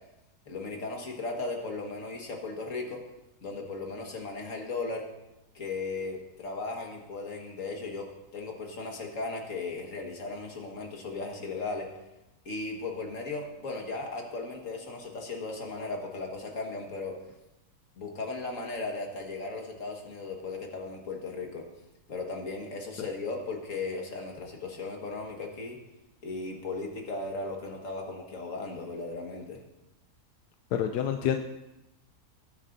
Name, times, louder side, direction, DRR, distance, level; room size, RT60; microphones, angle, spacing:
voice 1, 0.5-3.0 3.4-5.0 5.5-8.1 8.3-11.9 12.5-17.1 18.0-21.6 22.1-25.8 26.2-29.6, left 3 dB, 55° left, 1 dB, 2.0 m, -36 dB
voice 2, 30.7-31.4, left 9 dB, 85° left, 6 dB, 1.2 m, -28 dB
20.0 x 9.9 x 2.7 m, 0.96 s
omnidirectional pair, 1.7 m